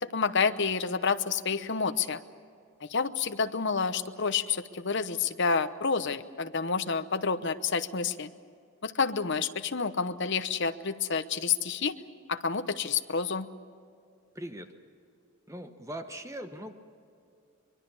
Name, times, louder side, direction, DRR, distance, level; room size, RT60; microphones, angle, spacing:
voice 1, 0.0-2.2 2.8-8.3 8.8-11.9 12.3-13.5, left 5 dB, 55° left, 10 dB, 0.9 m, -29 dB
voice 2, 14.3-14.8 15.5-16.7, right 1 dB, 15° right, 7 dB, 1.1 m, -40 dB
24.0 x 22.0 x 7.1 m, 2.4 s
head